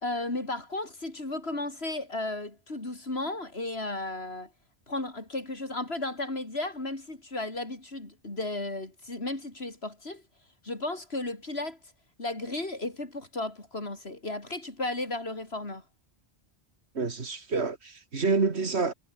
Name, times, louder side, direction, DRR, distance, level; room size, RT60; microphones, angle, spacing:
voice 1, 0.0-4.5 4.9-10.2 10.6-11.8 12.2-15.8, left 2 dB, 65° left, 4.7 m, -34 dB
voice 2, 16.9-18.9, right 4 dB, 70° right, 2.3 m, -28 dB
omnidirectional pair, 1.1 m